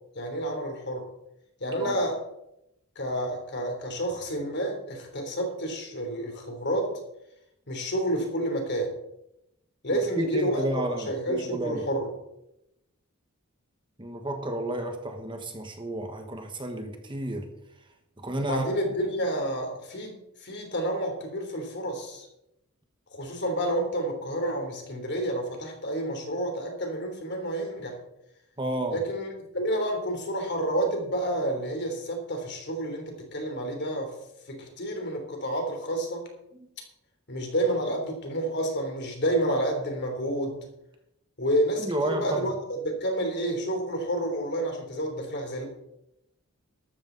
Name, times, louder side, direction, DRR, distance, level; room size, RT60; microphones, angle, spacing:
voice 1, 0.1-1.1 1.6-2.2 2.9-7.0 7.7-8.9 9.8-12.1 18.4-20.1 20.4-22.3 23.1-27.9 28.9-34.1 34.5-36.2 37.3-40.6 41.4-45.7, right 1 dB, 50° left, 3.4 m, -29 dB
voice 2, 9.9-11.8 14.0-17.5 18.2-18.6 28.6-29.0 41.8-42.5, right 1 dB, 20° right, 1.4 m, -31 dB
13.5 x 13.0 x 4.0 m
head